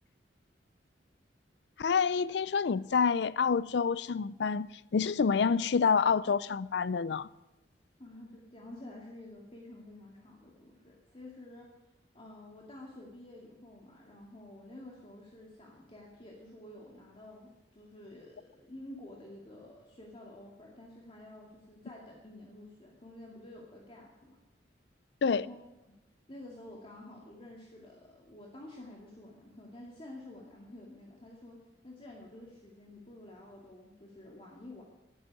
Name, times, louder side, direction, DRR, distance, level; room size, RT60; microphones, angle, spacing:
voice 1, 1.8-4.7 4.9-7.3 25.2-25.5, left 5 dB, 70° left, 0.4 m, -27 dB
voice 2, 8.0-11.7 12.1-24.4 25.2-25.6 25.9-26.0 26.3-34.8, left 1 dB, 30° left, 2.2 m, -50 dB
12.0 x 11.5 x 9.6 m
head